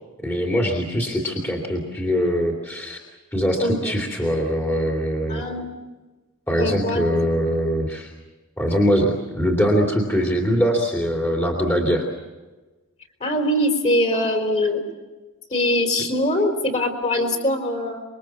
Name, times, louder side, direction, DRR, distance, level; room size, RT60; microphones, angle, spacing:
voice 1, 0.2-3.0 3.3-5.4 6.5-8.1 8.6-12.1, equal, 10° left, 0 dB, 2.7 m, -22 dB
voice 2, 3.6-4.0 5.3-5.7 6.6-7.0 13.2-14.9 15.5-18.0, left 1 dB, 30° left, 4 dB, 3.8 m, -22 dB
26.0 x 23.0 x 7.2 m, 1.2 s
head